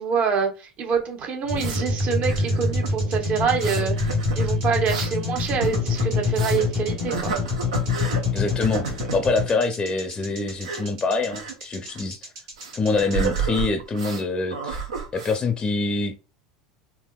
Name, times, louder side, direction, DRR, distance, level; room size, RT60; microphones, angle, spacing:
voice 1, 0.0-4.0 4.3-7.3, right 6 dB, 45° right, 0.9 m, -26 dB
sound 1, 0.9-1.8 2.3-2.9 3.5-6.7 7.1-8.2 8.6-9.2 10.5-10.8 11.3-11.5 11.8-12.0 12.6-14.2 14.5-15.4, right 6 dB, 85° right, 0.7 m, -31 dB
sound 2, 1.5-13.4, left 3 dB, 65° right, 1.6 m, -26 dB
voice 2, 8.3-12.3 12.7-14.9 15.1-16.2, left 3 dB, 25° left, 0.5 m, -25 dB
3.4 x 2.8 x 2.2 m
hypercardioid pair, 80°, 3 cm